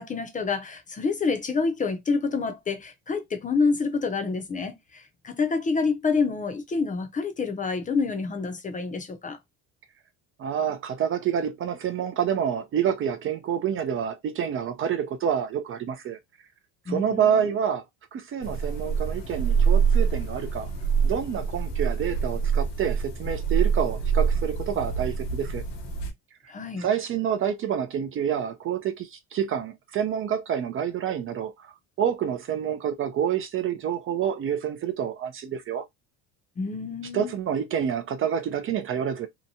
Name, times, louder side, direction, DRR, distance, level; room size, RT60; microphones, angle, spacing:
voice 1, 0.0-9.4 16.9-17.5 26.5-26.9 36.6-37.3, left 4 dB, 20° left, 0.6 m, -28 dB
voice 2, 10.4-16.2 16.9-17.8 18.1-20.7 21.0-25.6 26.8-35.8 37.1-39.3, right 8 dB, 40° right, 0.4 m, -28 dB
sound 1, 18.4-26.1, right 6 dB, 70° left, 1.0 m, -25 dB
2.8 x 2.2 x 2.6 m
cardioid pair, 115°, 35 cm